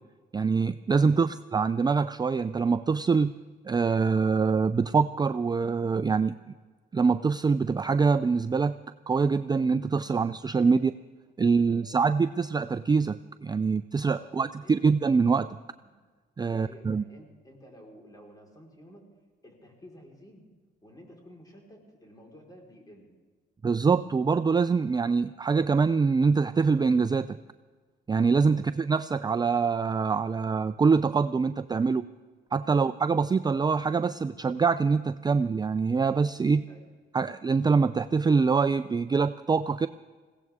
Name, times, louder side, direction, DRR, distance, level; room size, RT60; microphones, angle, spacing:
voice 1, 0.3-3.3 3.7-6.4 6.9-8.8 9.1-10.9 11.4-15.5 16.4-17.0 23.6-27.4 28.1-32.1 32.5-36.6 37.1-39.9, right 5 dB, 20° right, 12 dB, 0.4 m, -24 dB
voice 2, 1.0-1.3 10.0-10.2 10.6-10.8 11.6-12.0 14.1-14.8 15.8-15.9 16.4-19.1 19.4-20.4 20.8-23.1 28.4-28.6 32.6-32.8 36.7-36.9, equal, 20° left, 0 dB, 4.6 m, -52 dB
21.5 x 17.0 x 3.6 m, 1.4 s
cardioid pair, 90°, 20 cm